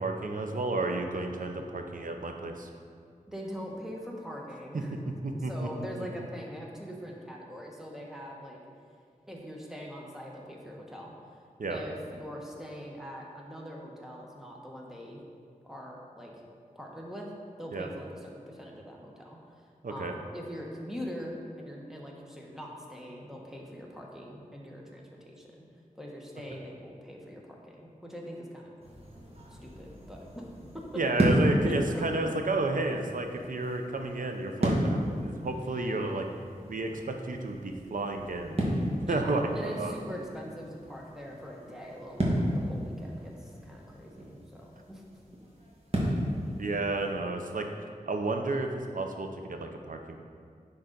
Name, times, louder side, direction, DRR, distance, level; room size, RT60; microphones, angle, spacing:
voice 1, 0.0-2.7 4.7-4.8 5.2-6.1 11.6-11.8 17.7-17.9 19.8-20.1 30.9-36.3 36.7-38.6 39.1-40.0 46.6-47.7 48.1-50.2, right 2 dB, 70° right, 4 dB, 0.7 m, -31 dB
voice 2, 3.3-8.6 9.3-11.1 11.7-15.2 15.6-16.3 16.7-17.3 17.6-25.6 25.9-28.7 29.5-30.4 31.9-32.1 39.1-45.0, equal, 5° right, -2 dB, 1.2 m, -42 dB
sound 1, 28.8-47.1, equal, 45° right, 1.5 m, -33 dB
10.0 x 3.9 x 3.9 m, 2.3 s
wide cardioid pair, 70°, 15 cm